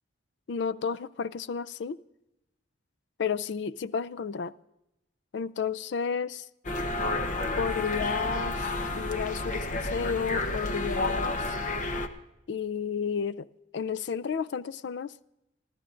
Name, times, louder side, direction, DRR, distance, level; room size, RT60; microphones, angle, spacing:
voice 1, 0.5-2.0 3.2-4.5 5.3-6.5 7.6-8.7 9.0-11.5 12.5-13.5 13.7-15.1, left 6 dB, 70° left, 0.4 m, -32 dB
sound 1, 6.6-12.1, left 2 dB, 45° left, 0.9 m, -30 dB
28.5 x 12.5 x 2.5 m
head